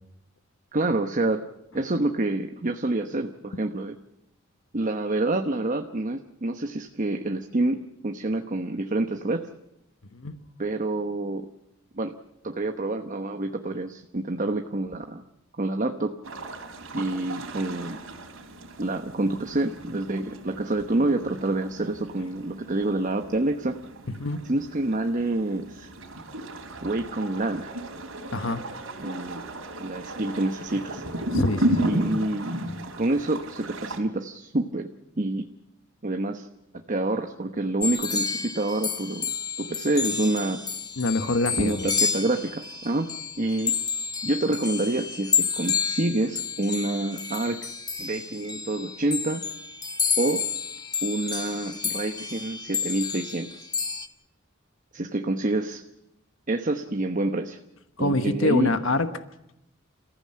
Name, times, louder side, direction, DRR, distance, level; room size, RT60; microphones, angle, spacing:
voice 1, 0.7-1.4 1.7-4.0 4.7-9.5 10.6-11.5 11.9-12.2 12.4-15.2 15.6-16.1 16.9-18.0 18.8-23.8 24.5-25.9 26.8-27.7 29.0-29.5 29.8-31.0 31.9-32.6 33.0-34.9 35.2-35.5 36.0-36.5 36.9-40.6 41.6-43.8 44.2-47.7 48.0-49.5 50.2-50.5 51.0-53.7 54.9-55.8 56.5-57.6 58.0-58.7, right 2 dB, 40° right, 5 dB, 1.0 m, -27 dB
sound 1, 16.2-34.0, right 1 dB, 90° right, 3.3 m, -34 dB
voice 2, 28.3-28.6 31.3-31.9 41.0-41.9 58.0-59.1, left 2 dB, 75° left, 9 dB, 1.2 m, -25 dB
sound 2, 37.8-54.1, left 6 dB, 20° left, 1.3 m, -30 dB
28.0 x 15.0 x 7.6 m, 0.86 s
head